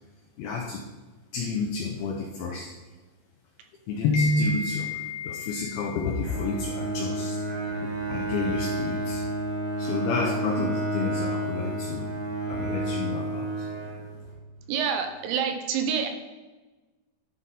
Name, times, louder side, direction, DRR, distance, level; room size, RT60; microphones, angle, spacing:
voice 1, 0.4-0.9 1.3-2.7 3.9-7.4 7.8-9.2 9.8-12.1 12.4-13.7, left 3 dB, 85° left, 1 dB, 2.2 m, -29 dB
Bowed string instrument, 6.2-14.4, right 1 dB, 55° right, 3.2 m, -30 dB
voice 2, 14.7-16.1, right 7 dB, 85° right, 5 dB, 3.1 m, -27 dB
10.5 x 3.7 x 4.1 m, 1.2 s
omnidirectional pair, 5.1 m